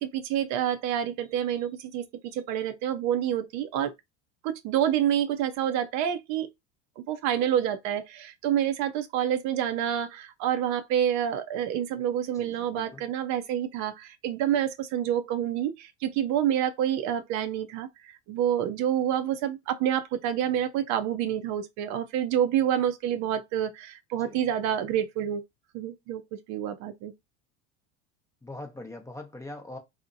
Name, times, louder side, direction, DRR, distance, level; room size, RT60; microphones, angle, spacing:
voice 1, 0.0-3.9 4.4-6.5 7.0-25.4 25.7-27.1, right 10 dB, 55° right, 0.5 m, -28 dB
voice 2, 12.3-13.0 24.2-24.4 28.4-29.8, left 2 dB, 10° left, 0.6 m, -42 dB
2.7 x 2.0 x 2.5 m
hypercardioid pair, 80°, 35 cm